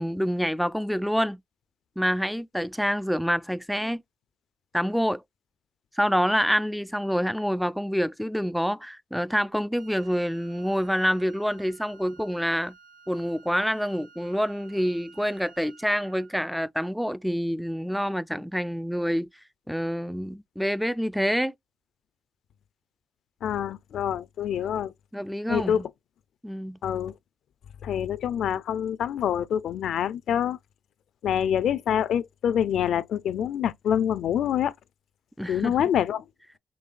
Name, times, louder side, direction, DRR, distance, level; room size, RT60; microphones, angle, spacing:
voice 1, 0.0-1.4 2.0-4.0 4.7-5.2 6.0-12.7 13.1-19.3 19.7-21.5 25.1-25.9 26.4-26.8 35.4-35.7, equal, ahead, 0.3 m, -27 dB
Wind instrument woodwind instrument, 9.7-16.4, right 5 dB, 85° right, 1.6 m, -54 dB
voice 2, 23.4-24.9 25.5-25.8 26.8-27.1 27.8-30.6 31.2-34.7 35.5-36.2, left 9 dB, 70° left, 0.5 m, -26 dB
5.3 x 3.1 x 2.4 m
cardioid pair, 90°, 0 cm